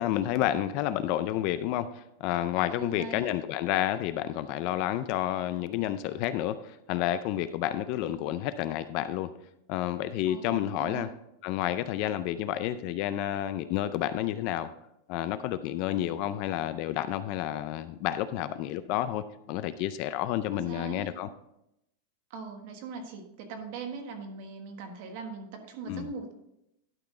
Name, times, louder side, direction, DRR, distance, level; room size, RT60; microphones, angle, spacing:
voice 1, 0.0-1.9 2.2-9.3 9.7-11.1 11.4-14.7 15.1-21.3 25.9-26.1, left 12 dB, 35° left, 12 dB, 0.4 m, -30 dB
voice 2, 2.8-3.3 10.3-11.0 20.5-21.2 22.3-26.3, right 5 dB, 40° right, 5 dB, 1.4 m, -40 dB
12.0 x 6.0 x 3.7 m, 0.81 s
supercardioid pair, 180°, 0 cm